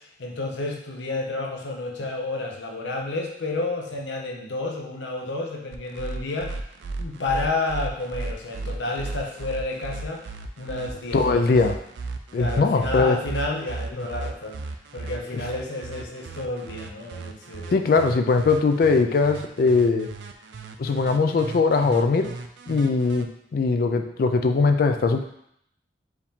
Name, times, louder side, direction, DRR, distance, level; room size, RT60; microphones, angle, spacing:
voice 1, 0.2-6.6 7.0-10.3 10.6-11.6 12.4-14.6 14.9-18.1, left 2 dB, 90° left, 1 dB, 0.7 m, -30 dB
sound 1, 5.7-23.2, right 3 dB, 75° right, 0.4 m, -35 dB
voice 2, 11.1-11.7 12.3-13.2 17.7-20.1 20.8-22.3 22.7-25.2, left 4 dB, 55° left, 7 dB, 0.3 m, -21 dB
4.7 x 2.7 x 3.5 m, 0.73 s
head